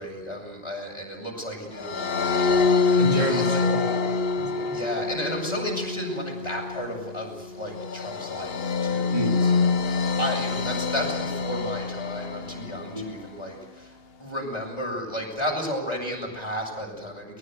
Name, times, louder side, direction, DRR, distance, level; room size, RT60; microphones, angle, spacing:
voice 1, 0.0-3.7 4.7-17.4, equal, 25° left, -1 dB, 7.3 m, -33 dB
sound 1, 1.8-13.1, left 4 dB, 75° left, 1.4 m, -26 dB
voice 2, 3.0-4.8 9.1-9.5 12.9-13.1, right 1 dB, 35° right, 2 dB, 3.9 m, -30 dB
23.0 x 20.5 x 8.1 m, 1.0 s
omnidirectional pair, 1.0 m